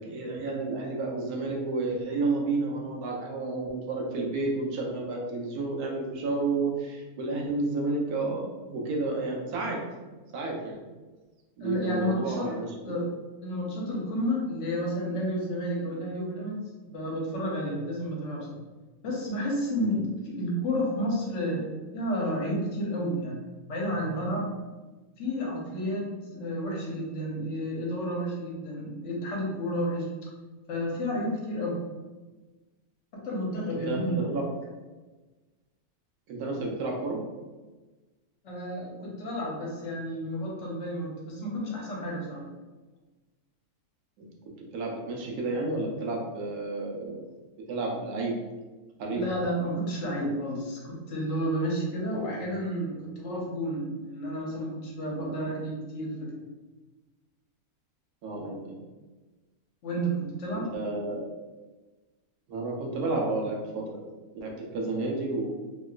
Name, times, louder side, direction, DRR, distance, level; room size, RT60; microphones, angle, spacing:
voice 1, 0.0-9.8 10.3-10.8 11.6-12.7 19.8-20.0 33.7-34.4 36.3-37.2 44.2-47.2 47.7-48.4 49.0-49.2 52.1-52.3 58.2-58.8 60.5-61.3 62.5-64.0 64.3-65.5, right 3 dB, 80° right, -1 dB, 1.2 m, -31 dB
voice 2, 11.6-12.5 12.8-13.1 13.4-16.6 16.9-18.6 19.0-23.4 23.7-24.5 25.2-30.1 30.7-31.8 33.1-34.3 38.4-42.5 49.1-56.4 59.8-60.7, equal, 60° left, -3 dB, 1.0 m, -31 dB
3.0 x 2.9 x 2.4 m, 1.2 s
omnidirectional pair, 1.6 m